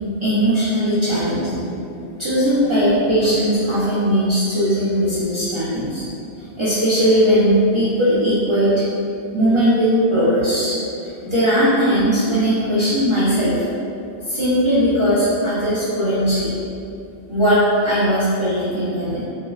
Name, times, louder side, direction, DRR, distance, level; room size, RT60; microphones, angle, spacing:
voice 1, 0.2-1.7 2.2-6.0 6.6-8.8 9.3-10.8 11.0-13.7 14.3-16.5 17.3-19.2, equal, 50° right, -13 dB, 0.3 m, -18 dB
2.6 x 2.0 x 2.3 m, 2.5 s
omnidirectional pair, 1.2 m